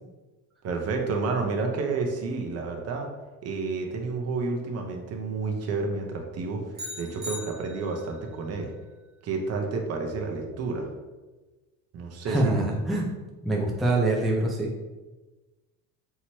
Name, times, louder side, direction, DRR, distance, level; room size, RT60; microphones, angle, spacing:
voice 1, 0.6-3.1 3.4-8.7 9.2-10.9 11.9-12.6, right 4 dB, 45° right, 2 dB, 0.8 m, -30 dB
sound 1, 6.8-8.2, left 1 dB, 25° right, 1.1 m, -39 dB
voice 2, 12.2-13.1 13.4-14.7, right 2 dB, ahead, -3 dB, 0.5 m, -24 dB
5.7 x 3.0 x 2.8 m, 1.2 s
cardioid pair, 135°, 35 cm